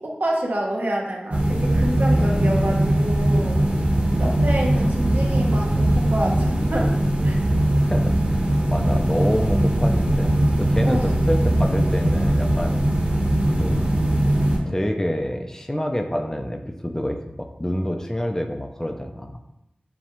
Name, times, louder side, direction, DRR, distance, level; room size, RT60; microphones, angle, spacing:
voice 1, 0.0-3.6 4.2-6.9 7.2-7.4 10.9-11.2, right 1 dB, 70° right, -2 dB, 1.0 m, -27 dB
sound 1, 1.3-14.6, right 1 dB, 45° right, 1.2 m, -20 dB
voice 2, 2.2-2.9 7.8-12.8 13.6-14.3 14.7-19.3, equal, 15° left, 4 dB, 0.5 m, -27 dB
7.1 x 2.4 x 3.0 m, 0.87 s
wide cardioid pair, 40°, 3 cm